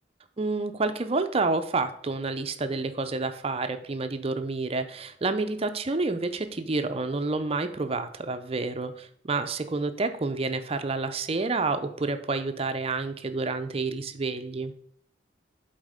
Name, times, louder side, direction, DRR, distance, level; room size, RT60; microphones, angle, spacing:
voice 1, 0.4-14.7, right 3 dB, 30° right, 9 dB, 0.5 m, -29 dB
7.8 x 4.1 x 5.0 m, 0.66 s
head